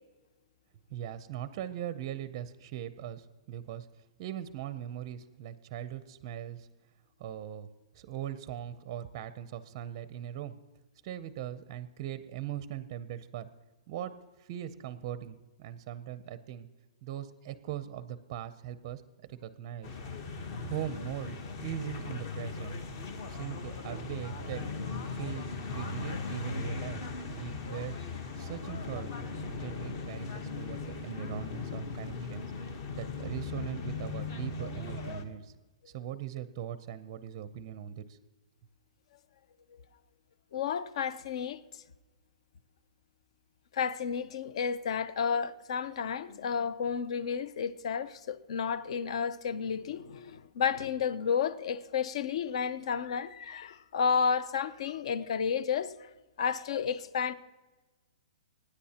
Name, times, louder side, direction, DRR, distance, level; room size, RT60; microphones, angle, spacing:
voice 1, 0.9-3.9 4.2-6.7 7.2-7.7 7.9-10.5 11.0-13.5 13.9-14.1 14.4-16.7 17.0-19.0 19.3-20.0 20.6-22.7 23.2-24.7 25.1-25.5 25.7-28.0 28.4-29.1 29.5-35.5 35.9-38.2, right 11 dB, 30° right, 0.5 m, -40 dB
sound 1, 19.8-35.2, left 4 dB, 35° left, 1.0 m, -38 dB
voice 2, 40.5-41.6 43.7-56.1 56.4-57.3, left 6 dB, 55° left, 0.6 m, -31 dB
25.0 x 9.8 x 2.8 m
hypercardioid pair, 165°, 4 cm